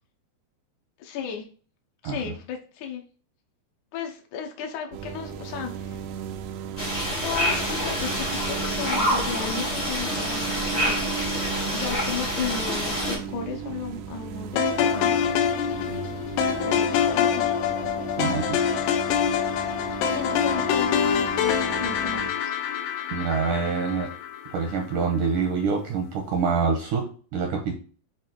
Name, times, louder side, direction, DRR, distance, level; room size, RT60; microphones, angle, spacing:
voice 1, 1.0-1.5 2.0-3.0 3.9-6.0 7.2-15.3 16.6-17.5 20.1-22.6, left 7 dB, 75° left, 1 dB, 1.8 m, -34 dB
sound 1, 4.9-22.3, right 8 dB, 90° right, 2.8 m, -36 dB
sound 2, 6.8-13.2, equal, 50° left, 0.4 m, -27 dB
sound 3, 14.6-24.8, left 7 dB, 90° left, 3.0 m, -25 dB
voice 2, 18.2-18.6 23.1-24.1 24.5-27.8, right 5 dB, 75° right, 2 dB, 1.9 m, -26 dB
7.9 x 2.8 x 4.5 m, 0.41 s
omnidirectional pair, 4.7 m